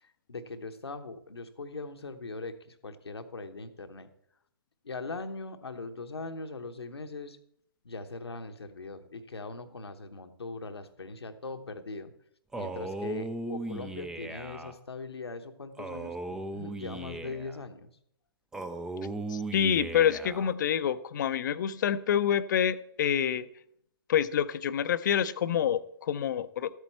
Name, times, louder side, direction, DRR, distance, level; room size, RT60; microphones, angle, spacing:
voice 1, 0.0-4.1 4.8-7.4 7.8-12.1 12.5-17.9, left 3 dB, 80° left, 8 dB, 1.0 m, -40 dB
Male speech man speaking, 12.5-14.7 15.8-17.6 18.5-20.5, right 2 dB, 5° right, 0.4 m, -37 dB
voice 2, 19.3-23.5 24.1-26.7, left 9 dB, 50° left, 15 dB, 0.5 m, -27 dB
13.0 x 8.1 x 4.4 m, 0.71 s
figure-of-eight pair, 130°, 13 cm